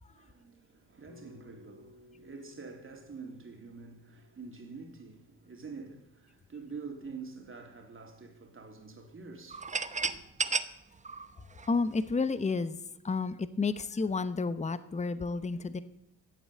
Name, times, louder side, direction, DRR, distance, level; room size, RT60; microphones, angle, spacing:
voice 1, 0.1-10.2, right 4 dB, 35° right, 3.1 m, -47 dB
Bass guitar, 1.1-5.5, left 2 dB, 65° left, 3.4 m, -59 dB
sound 1, 9.5-12.3, right 4 dB, 20° right, 0.9 m, -34 dB
voice 2, 11.7-15.8, left 4 dB, 20° left, 0.9 m, -31 dB
14.0 x 8.0 x 7.7 m
supercardioid pair, 70°, 35 cm